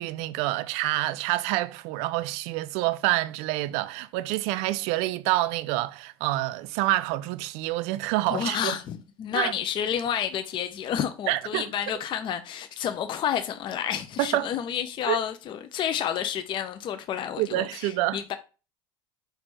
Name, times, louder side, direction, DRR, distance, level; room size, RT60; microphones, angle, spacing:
voice 1, 0.0-8.8 9.3-9.5 11.3-11.7 14.2-14.5 15.1-15.2 17.4-18.2, right 17 dB, 60° right, 0.4 m, -27 dB
voice 2, 8.3-18.3, left 9 dB, 40° left, 0.5 m, -30 dB
4.3 x 2.6 x 4.3 m
hypercardioid pair, 80°, 13 cm